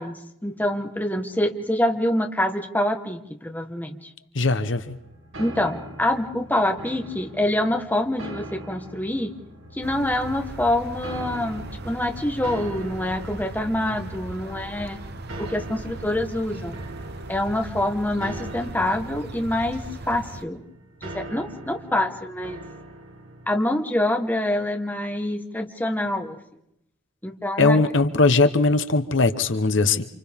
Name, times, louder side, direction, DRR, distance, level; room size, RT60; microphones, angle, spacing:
voice 1, 0.0-4.0 5.4-9.3 9.7-15.0 15.4-16.8 17.3-20.6 21.0-22.6 23.5-26.4 27.2-27.9, left 1 dB, 10° left, 4 dB, 1.4 m, -26 dB
voice 2, 4.3-5.0 27.6-30.0, left 3 dB, 70° left, 10 dB, 1.0 m, -20 dB
sound 1, 4.5-23.5, right 1 dB, 90° right, 2.5 m, -42 dB
sound 2, 9.8-20.4, right 2 dB, 55° right, 1.0 m, -38 dB
29.5 x 27.0 x 3.6 m, 0.76 s
head